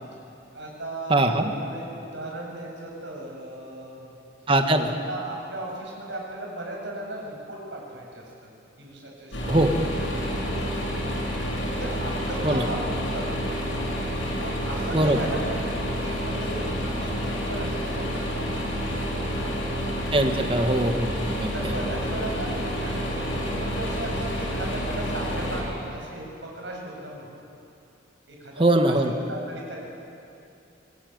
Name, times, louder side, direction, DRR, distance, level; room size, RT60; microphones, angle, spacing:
voice 1, 0.5-4.1 5.1-8.5 8.8-9.9 10.2-11.2 11.8-13.5 14.4-19.5 21.2-27.3 28.3-29.8, right 1 dB, 70° right, -2 dB, 7.6 m, -37 dB
voice 2, 1.1-1.4 4.5-4.9 9.5-9.7 12.4-12.6 14.9-15.2 20.1-21.7 28.6-29.1, right 1 dB, 30° right, 6 dB, 1.6 m, -22 dB
sound 1, 9.3-25.6, equal, 85° left, 7.9 m, -29 dB
25.0 x 20.5 x 9.5 m, 2.7 s
head